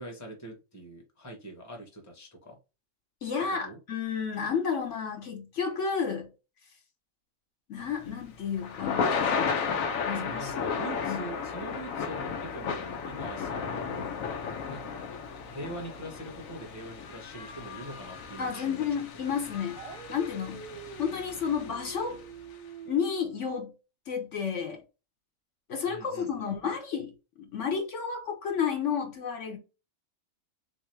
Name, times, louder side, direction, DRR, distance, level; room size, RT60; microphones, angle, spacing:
voice 1, 0.0-2.6 3.6-3.8 10.1-14.0 14.7-14.9 15.5-19.2 25.9-26.5, right 1 dB, 15° left, 0.9 m, -43 dB
voice 2, 3.2-6.3 7.7-9.2 10.1-10.7 11.0-11.2 18.4-19.8 20.1-20.6 21.0-22.2 22.9-23.7 24.1-24.8 25.7-27.1 27.4-29.6, left 6 dB, 65° left, 1.1 m, -31 dB
Thunder / Rain, 7.9-22.1, left 6 dB, 90° left, 1.1 m, -34 dB
Dog, 19.7-23.4, right 5 dB, 65° right, 0.3 m, -45 dB
3.6 x 3.0 x 3.2 m
omnidirectional pair, 1.4 m